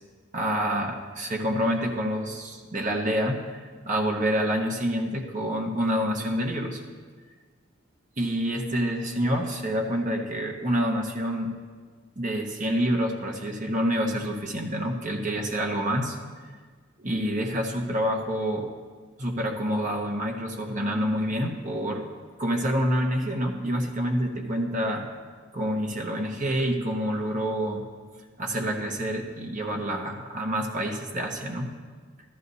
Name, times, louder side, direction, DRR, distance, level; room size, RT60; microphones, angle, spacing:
voice 1, 0.3-6.8 8.2-11.5 12.2-16.2 17.0-18.7 19.2-22.0 22.4-25.1 25.5-27.8 28.4-31.7, equal, 40° right, 1 dB, 1.2 m, -27 dB
14.0 x 13.0 x 2.7 m, 1.5 s
head